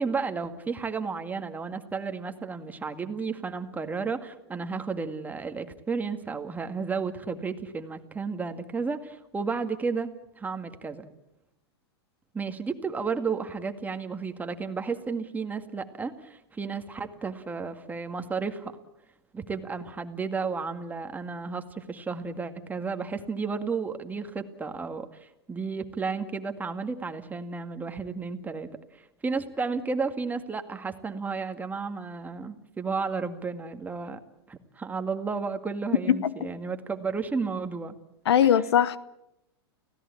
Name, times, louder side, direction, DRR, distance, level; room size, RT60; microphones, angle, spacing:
voice 1, 0.0-11.1 12.3-18.7 19.3-34.2 34.5-37.9 38.4-38.6, right 4 dB, 10° right, 2.1 m, -32 dB
voice 2, 38.3-39.0, left 9 dB, 80° left, 1.1 m, -21 dB
30.0 x 17.0 x 8.6 m
hypercardioid pair, 120°, 13 cm